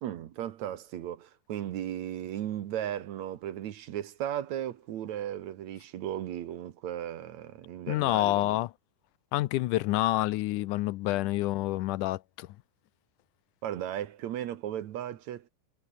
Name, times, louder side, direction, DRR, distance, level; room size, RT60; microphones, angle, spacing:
voice 1, 0.0-8.6 13.6-15.5, right 11 dB, 65° right, 2.3 m, -36 dB
voice 2, 7.9-8.7 9.3-12.5, left 17 dB, 80° left, 2.1 m, -28 dB
omnidirectional pair, 3.7 m